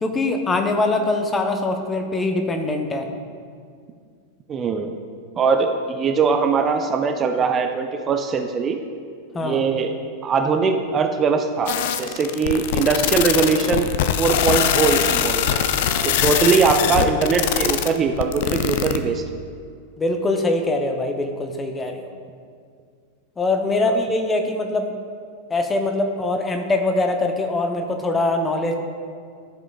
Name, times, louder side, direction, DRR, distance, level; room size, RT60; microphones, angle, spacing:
voice 1, 0.0-3.1 9.3-9.7 20.0-22.1 23.4-24.9 25.5-28.7, left 2 dB, 15° left, 5 dB, 0.6 m, -23 dB
voice 2, 4.5-4.9 5.4-8.8 9.4-9.9 10.2-13.9 14.2-15.6 16.0-19.2 23.8-23.9, right 5 dB, 25° right, 5 dB, 0.4 m, -21 dB
sound 1, 11.7-19.0, left 9 dB, 50° left, 0.3 m, -22 dB
12.0 x 5.0 x 2.3 m, 2.2 s
figure-of-eight pair, 90°, 0 cm